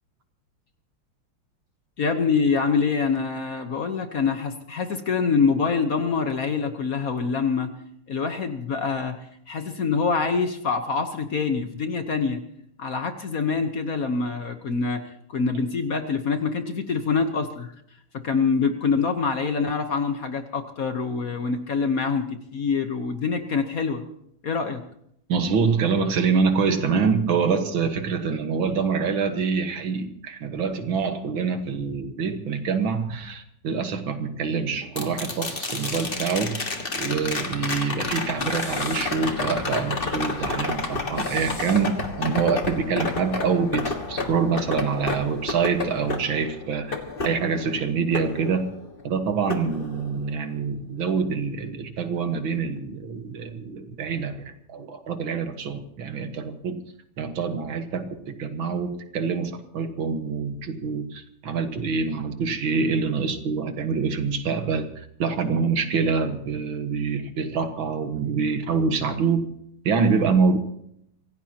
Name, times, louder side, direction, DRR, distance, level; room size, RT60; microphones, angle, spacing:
voice 1, 2.0-7.7 8.1-9.2 9.5-12.4 12.8-17.7 18.2-24.0 24.4-24.8, left 5 dB, 50° left, 7 dB, 1.3 m, -25 dB
voice 2, 25.3-36.6 36.9-47.0 47.2-48.7 49.0-56.8 57.2-69.5 69.9-70.6, right 5 dB, 70° right, 7 dB, 2.1 m, -25 dB
sound 1, 35.0-49.1 49.5-50.5 52.8-52.9, left 3 dB, 30° left, 1.6 m, -31 dB
sound 2, 35.5-36.2 38.4-39.2 41.1-41.9, left 1 dB, 15° left, 2.2 m, -42 dB
25.5 x 16.5 x 2.9 m, 0.73 s
omnidirectional pair, 2.3 m